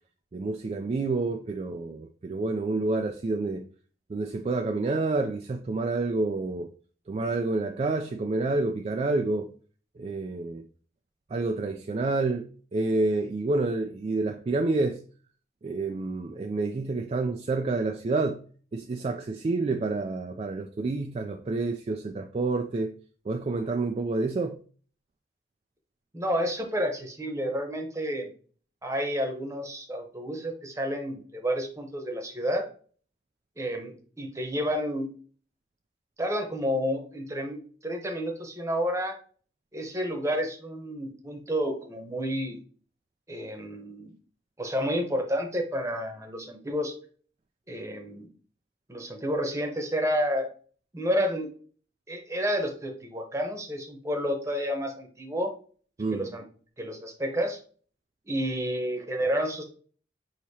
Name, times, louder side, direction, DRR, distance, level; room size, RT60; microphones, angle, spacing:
voice 1, 0.3-3.6 4.1-6.7 7.1-9.5 10.0-10.6 11.3-12.4 12.7-15.0 15.6-18.4 18.7-22.9 23.3-24.6 56.0-56.3, right 3 dB, 35° right, 0.3 m, -28 dB
voice 2, 26.1-28.3 28.8-32.7 33.6-35.1 36.2-39.2 39.7-42.6 43.3-44.1 44.6-46.9 47.7-48.3 48.9-50.5 50.9-51.5 52.1-55.5 56.1-56.4 56.8-57.6 58.3-59.6, equal, 15° right, 0.9 m, -30 dB
6.3 x 2.8 x 2.8 m
head